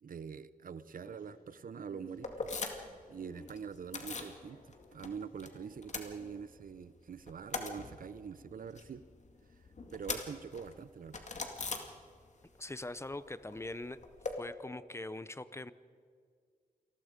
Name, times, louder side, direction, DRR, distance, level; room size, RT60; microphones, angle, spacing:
voice 1, 0.0-2.5 3.1-9.0 9.9-11.2, right 6 dB, 70° right, 15 dB, 0.7 m, -45 dB
sound 1, 1.0-6.3, left 2 dB, 70° left, 5.7 m, -60 dB
sound 2, 2.2-3.0 3.3-4.4 4.7-5.5 5.7-6.8 7.1-12.5 12.7-14.3, left 3 dB, 55° left, 2.3 m, -42 dB
voice 2, 12.6-14.0 14.4-15.7, left 2 dB, 20° left, 15 dB, 0.7 m, -42 dB
28.0 x 20.0 x 5.2 m, 2.1 s
wide cardioid pair, 100°, 15 cm